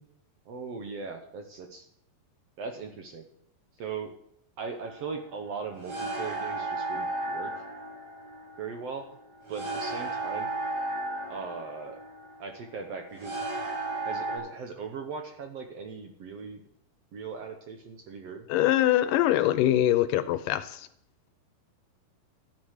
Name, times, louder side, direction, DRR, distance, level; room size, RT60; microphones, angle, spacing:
voice 1, 0.5-1.9 2.6-3.3 3.8-4.1 4.6-7.5 8.6-9.1 9.5-10.5 11.3-12.0 12.4-13.4 14.0-16.6 17.1-18.5, right 5 dB, 60° right, 5 dB, 1.8 m, -39 dB
sound 1, 4.8-14.4, right 2 dB, 85° right, 6.9 m, -35 dB
voice 2, 18.5-20.7, left 13 dB, 80° left, 14 dB, 2.2 m, -23 dB
13.5 x 10.5 x 6.5 m, 0.69 s
omnidirectional pair, 4.0 m